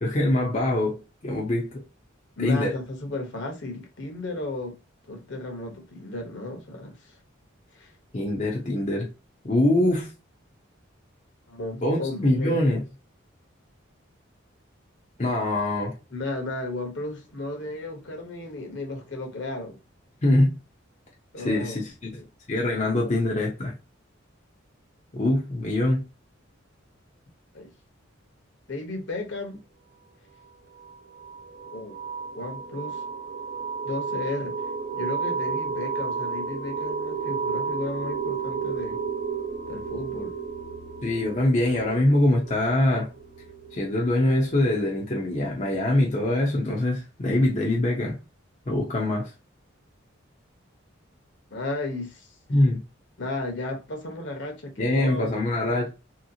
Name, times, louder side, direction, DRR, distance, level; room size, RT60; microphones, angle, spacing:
voice 1, 0.0-1.8 2.4-2.7 8.1-9.1 9.4-10.1 11.8-12.8 15.2-15.9 20.2-20.5 21.4-23.7 25.1-26.0 41.0-43.1 43.7-48.2 48.7-49.3 52.5-52.8 54.8-55.9, left 1 dB, 35° left, 0.6 m, -23 dB
voice 2, 2.4-4.8 5.1-7.2 7.7-7.9 11.5-12.6 16.1-19.8 21.3-21.8 22.8-23.1 27.5-27.7 28.7-29.6 31.7-32.0 32.3-33.0 33.8-39.0 39.7-40.3 49.1-49.2 51.5-52.3 53.2-55.3, left 2 dB, 65° left, 1.0 m, -34 dB
sound 1, 30.8-45.2, right 5 dB, 70° right, 1.0 m, -32 dB
3.2 x 2.9 x 2.7 m
head